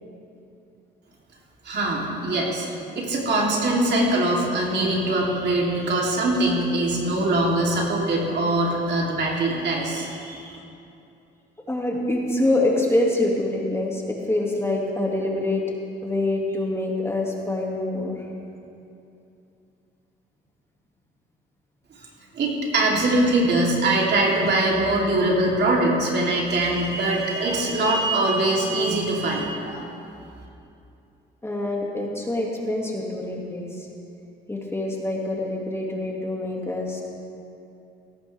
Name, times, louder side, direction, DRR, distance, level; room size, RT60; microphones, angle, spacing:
voice 1, 1.6-2.7 2.9-10.6 22.3-29.9, right 2 dB, 60° right, -3 dB, 3.2 m, -22 dB
voice 2, 11.7-15.6 16.0-18.2 31.4-33.9 34.5-37.0, left 1 dB, 15° left, -2 dB, 2.3 m, -25 dB
17.0 x 14.5 x 3.5 m, 2.7 s
cardioid pair, 90°, 20 cm